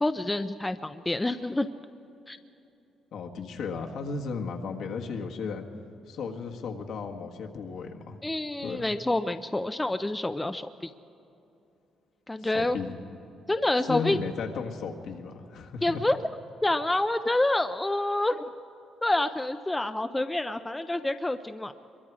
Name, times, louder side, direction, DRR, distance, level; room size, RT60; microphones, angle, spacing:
voice 1, 0.0-1.7 2.3-2.4 8.2-10.9 12.3-12.8 13.5-14.2 15.8-16.2 16.6-18.5 19.0-21.7, left 1 dB, 10° left, 9 dB, 0.4 m, -27 dB
voice 2, 3.1-5.7 6.0-8.2 8.6-8.9 12.4-13.0 13.9-16.0, left 5 dB, 65° left, 2 dB, 1.7 m, -35 dB
25.0 x 22.5 x 4.9 m, 2.8 s
cardioid pair, 160°, 0 cm